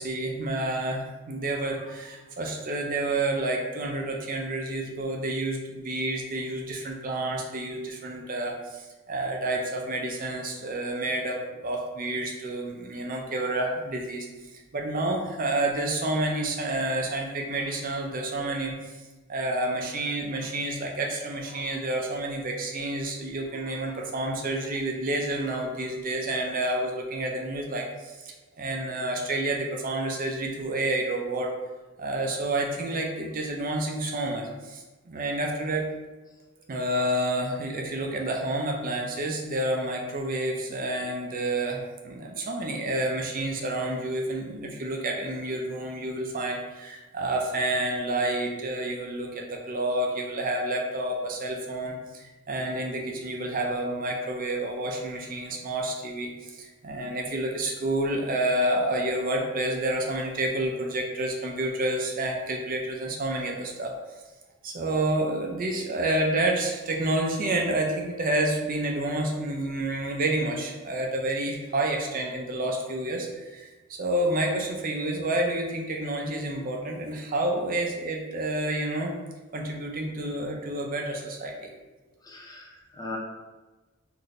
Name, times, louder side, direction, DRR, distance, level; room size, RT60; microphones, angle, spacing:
voice 1, 0.0-14.3 14.7-18.7 19.3-31.5 32.0-35.9 36.7-63.9 64.6-79.1 79.5-81.7, right 1 dB, 40° right, 1 dB, 0.6 m, -29 dB
voice 2, 82.2-83.2, left 2 dB, 20° left, -2 dB, 0.5 m, -39 dB
4.0 x 2.6 x 3.2 m, 1.2 s
head